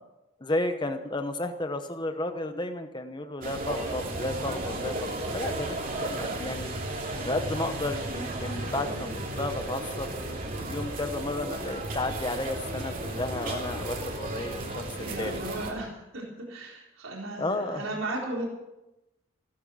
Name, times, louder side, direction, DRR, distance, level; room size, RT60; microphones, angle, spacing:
voice 1, 0.4-6.7 7.2-15.4 17.4-17.9, left 2 dB, 20° left, 7 dB, 0.9 m, -33 dB
sound 1, 3.4-15.7, right 1 dB, 40° right, 3.0 m, -34 dB
voice 2, 14.9-18.5, right 2 dB, 75° right, -2 dB, 4.2 m, -36 dB
16.5 x 13.5 x 6.2 m, 0.97 s
head